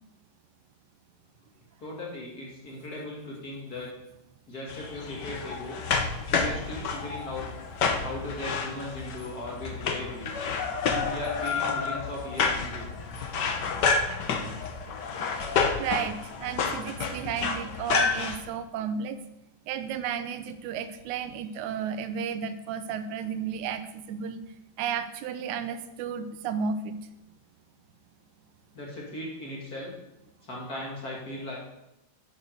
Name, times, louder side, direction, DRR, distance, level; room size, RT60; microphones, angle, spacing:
voice 1, 1.8-3.9 4.5-5.8 6.3-7.4 8.0-10.3 10.9-12.9 28.7-29.9 30.4-31.6, left 1 dB, 35° left, -3 dB, 2.2 m, -37 dB
sound 1, 4.7-18.4, left 5 dB, 75° left, 0.9 m, -29 dB
voice 2, 15.8-19.2 19.7-24.4 24.8-27.0, right 7 dB, 85° right, 10 dB, 2.1 m, -33 dB
9.1 x 6.7 x 6.4 m, 0.89 s
omnidirectional pair, 3.4 m